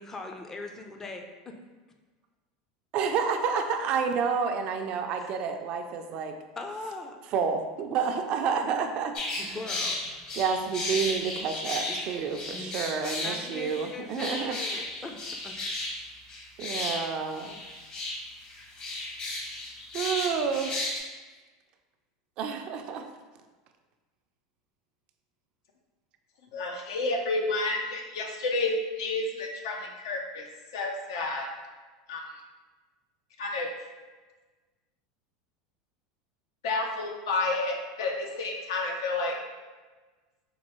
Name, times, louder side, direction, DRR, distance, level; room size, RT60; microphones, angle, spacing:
voice 1, 0.0-1.5 5.2-5.3 6.6-7.2 9.4-10.0 11.9-12.0 12.5-12.7 13.2-15.5, left 3 dB, 20° left, 4 dB, 0.5 m, -40 dB
voice 2, 2.9-6.4 7.3-9.6 10.4-14.6 16.6-17.6 19.9-20.8 22.4-23.1, right 6 dB, 50° right, 6 dB, 0.4 m, -29 dB
sound 1, 9.1-21.0, left 2 dB, 45° left, 1.0 m, -34 dB
voice 3, 26.5-30.5 30.7-31.5 32.1-32.2 33.4-33.7 36.6-39.3, left 2 dB, 80° left, 1 dB, 0.6 m, -30 dB
4.4 x 2.3 x 3.0 m, 1.3 s
supercardioid pair, 105°, 2 cm